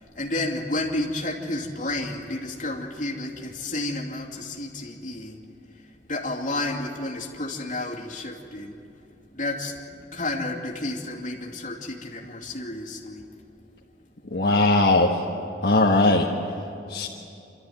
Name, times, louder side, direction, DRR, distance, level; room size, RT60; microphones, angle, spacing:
voice 1, 0.0-5.4 5.7-8.8 9.3-13.3 16.0-16.3, left 2 dB, 45° left, -1 dB, 2.5 m, -31 dB
voice 2, 14.3-15.2 15.6-16.3 16.9-17.1, left 2 dB, 60° left, -2 dB, 1.3 m, -19 dB
27.5 x 13.0 x 9.4 m, 2.7 s
head